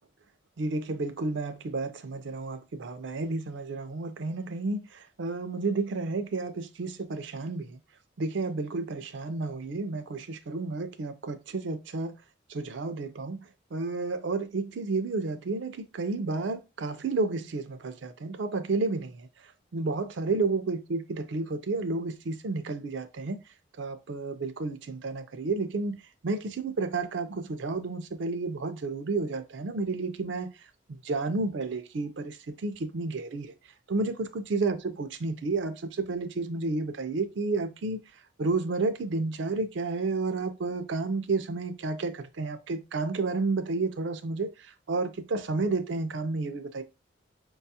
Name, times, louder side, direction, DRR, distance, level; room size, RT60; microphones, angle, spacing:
voice 1, 0.6-7.8 8.2-12.2 12.5-19.3 19.7-23.4 23.8-30.5 30.9-33.5 33.9-38.0 38.4-46.8, right 3 dB, 65° right, 0.4 m, -31 dB
4.6 x 2.3 x 2.7 m
head